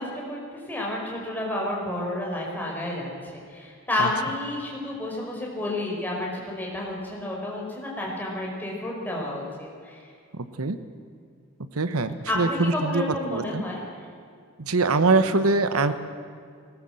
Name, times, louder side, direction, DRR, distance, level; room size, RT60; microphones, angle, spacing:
voice 1, 0.0-10.0 12.3-13.8, left 1 dB, 10° left, -3 dB, 5.0 m, -30 dB
voice 2, 10.3-10.8 11.7-13.6 14.6-15.9, right 3 dB, 85° right, 11 dB, 1.1 m, -23 dB
19.5 x 18.5 x 7.8 m, 2.3 s
head